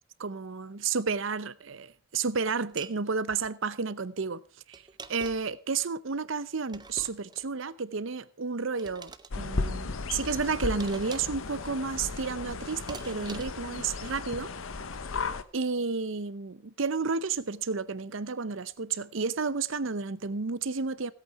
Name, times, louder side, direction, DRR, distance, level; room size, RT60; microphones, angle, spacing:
voice 1, 0.2-4.4 4.7-4.8 5.1-14.5 15.5-21.1, right 4 dB, 65° right, 0.7 m, -31 dB
sound 1, 2.8-3.0 4.7-5.6 6.7-7.5 8.8-9.3 10.8-11.4 12.9-13.7, right 4 dB, 20° right, 0.6 m, -45 dB
sound 2, 9.3-15.4, left 3 dB, 75° left, 0.9 m, -35 dB
16.5 x 8.5 x 4.7 m
head